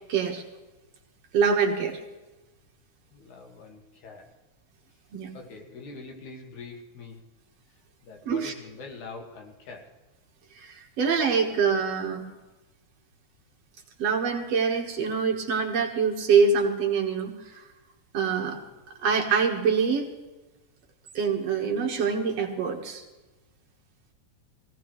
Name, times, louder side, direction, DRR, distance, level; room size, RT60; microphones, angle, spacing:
voice 1, 0.1-0.4 1.3-2.0 5.1-5.3 8.3-8.5 10.6-12.2 14.0-17.6 18.1-18.6 19.0-20.1 21.1-23.0, right 5 dB, 60° right, 2 dB, 2.5 m, -25 dB
voice 2, 3.1-4.3 5.3-7.3 8.0-9.9 18.5-18.6, left 3 dB, 80° left, 2 dB, 3.3 m, -44 dB
18.5 x 16.5 x 3.2 m, 1.1 s
omnidirectional pair, 3.4 m